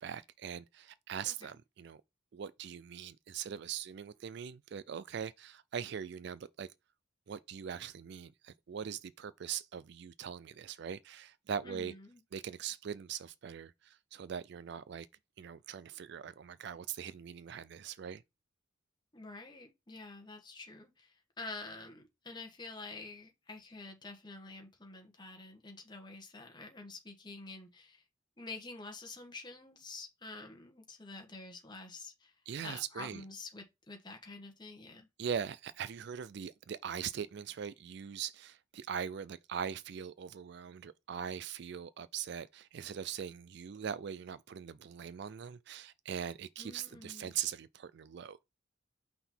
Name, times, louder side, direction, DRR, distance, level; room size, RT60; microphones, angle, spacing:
voice 1, 0.0-2.0 2.3-6.7 7.3-11.9 12.3-15.1 15.4-18.2 32.5-33.2 35.2-48.4, right 8 dB, 60° right, 0.4 m, -41 dB
voice 2, 11.6-12.2 19.1-28.0 28.4-32.3 32.6-35.1 46.6-47.3, left 3 dB, 20° left, 1.4 m, -48 dB
5.6 x 3.9 x 4.3 m
head